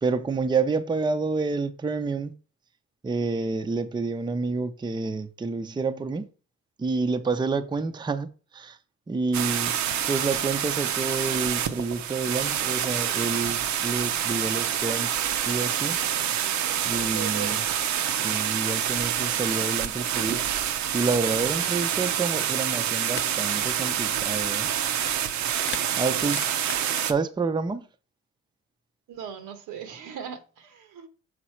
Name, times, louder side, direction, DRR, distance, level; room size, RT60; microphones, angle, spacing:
voice 1, 0.0-2.3 3.0-6.3 6.8-8.8 9.1-9.7 10.0-16.0 16.9-17.6 18.1-20.4 20.9-24.7 26.0-26.4 27.0-27.9, right 4 dB, 15° right, 0.5 m, -28 dB
sound 1, 9.3-27.1, right 10 dB, 70° right, 0.6 m, -27 dB
voice 2, 17.1-17.7 25.9-26.5 29.1-31.1, right 8 dB, 90° right, 1.0 m, -39 dB
sound 2, 23.2-23.3 23.6-23.8 24.3-25.3 25.6-27.0, left 7 dB, 40° left, 0.6 m, -39 dB
6.3 x 3.9 x 4.3 m
cardioid pair, 90°, 30 cm